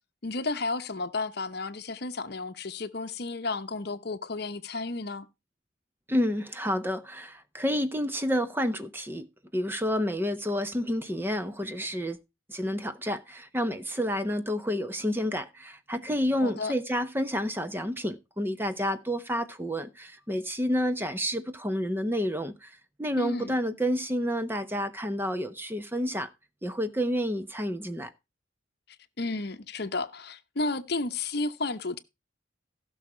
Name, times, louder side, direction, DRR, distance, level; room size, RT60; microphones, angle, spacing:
voice 1, 0.2-5.3 16.4-16.7 23.2-23.5 29.2-32.0, left 3 dB, 55° left, 0.9 m, -32 dB
voice 2, 6.1-9.3 9.5-12.2 12.5-26.3 26.6-28.1, equal, 10° right, 0.9 m, -29 dB
16.0 x 6.4 x 4.4 m
head